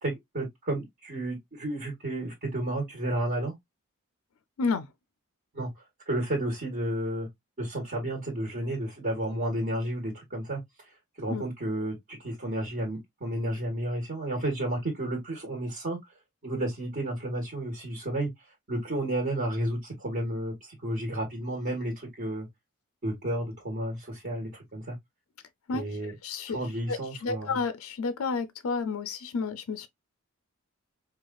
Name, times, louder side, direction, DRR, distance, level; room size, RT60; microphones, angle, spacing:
voice 1, 0.0-3.5 5.5-5.7 6.1-7.3 7.6-10.6 11.2-16.0 16.4-18.3 18.7-20.5 20.8-22.5 23.0-24.9 25.7-26.1 26.5-27.6, right 1 dB, 45° right, 1.4 m, -32 dB
voice 2, 25.7-26.6 26.9-29.9, left 4 dB, 70° left, 0.4 m, -31 dB
4.6 x 2.4 x 2.3 m
head